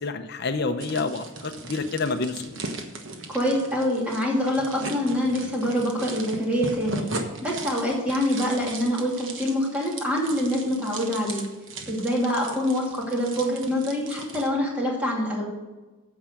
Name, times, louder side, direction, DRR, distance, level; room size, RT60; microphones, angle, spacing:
voice 1, 0.0-2.5, left 3 dB, 50° left, 8 dB, 0.7 m, -28 dB
sound 1, 0.8-14.5, right 2 dB, 60° right, 1.3 m, -38 dB
voice 2, 3.3-7.1 7.4-11.5 11.9-15.5, equal, 5° right, -3 dB, 2.5 m, -25 dB
9.3 x 7.1 x 6.5 m, 1.2 s
head